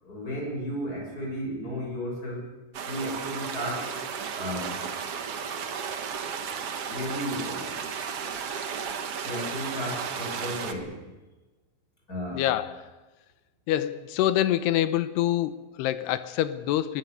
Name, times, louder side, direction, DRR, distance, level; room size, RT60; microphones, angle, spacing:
voice 1, 0.0-2.5 2.8-3.9 4.3-4.9 6.9-7.9 9.2-11.1 12.1-12.5, equal, 20° left, 7.4 m, -34 dB
sound 1, 2.7-10.7, right 7 dB, 80° right, 1.3 m, -34 dB
voice 2, 12.3-12.8 13.7-17.0, left 13 dB, 75° left, 2.9 m, -26 dB
22.5 x 20.5 x 6.9 m
omnidirectional pair, 5.0 m